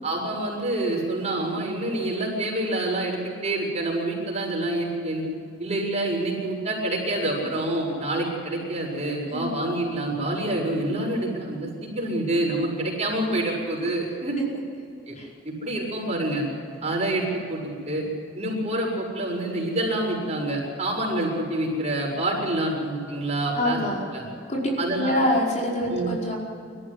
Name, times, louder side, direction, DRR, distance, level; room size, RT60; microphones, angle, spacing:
voice 1, 0.0-5.2 5.6-14.4 15.1-15.2 15.5-16.5 16.8-18.0 18.4-23.8 24.1-24.2 24.8-25.2 25.9-26.1, right 1 dB, 35° right, -2 dB, 6.9 m, -27 dB
voice 2, 23.6-24.0 24.5-26.3, left 1 dB, 40° left, -2 dB, 4.9 m, -25 dB
25.0 x 14.5 x 9.8 m, 2.3 s
head